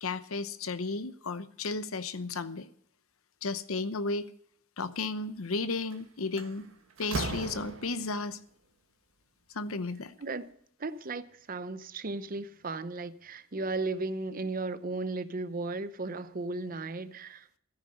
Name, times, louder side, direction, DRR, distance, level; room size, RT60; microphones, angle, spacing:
voice 1, 0.0-2.7 3.4-4.3 4.8-6.7 7.0-8.4 9.5-10.1, left 3 dB, 85° left, 0.9 m, -34 dB
Slam, 5.7-5.9 6.4-8.2, right 3 dB, 70° right, 1.4 m, -37 dB
voice 2, 10.2-17.5, right 3 dB, 40° right, 0.8 m, -35 dB
14.0 x 9.8 x 6.4 m
head